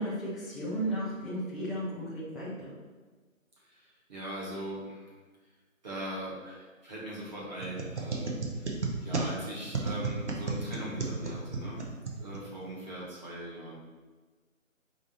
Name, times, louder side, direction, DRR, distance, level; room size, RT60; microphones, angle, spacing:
voice 1, 0.0-2.7, right 1 dB, ahead, -10 dB, 0.4 m, -34 dB
voice 2, 3.7-5.1 5.8-11.8 12.2-13.8, right 1 dB, 30° right, -7 dB, 1.4 m, -40 dB
sound 1, 7.6-12.7, right 3 dB, 55° right, 0.8 m, -34 dB
4.8 x 2.7 x 4.2 m, 1.3 s
figure-of-eight pair, 160°, 41 cm